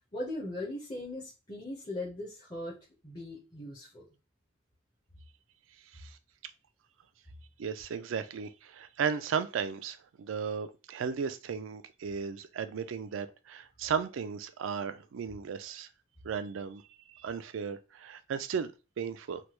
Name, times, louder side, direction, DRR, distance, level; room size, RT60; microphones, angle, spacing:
voice 1, 0.1-2.8 3.0-4.1, left 1 dB, 20° left, 0.7 m, -39 dB
voice 2, 7.6-15.9 16.2-16.8 17.1-18.7 19.0-19.4, right 6 dB, 75° right, 0.4 m, -35 dB
3.2 x 2.2 x 2.9 m
head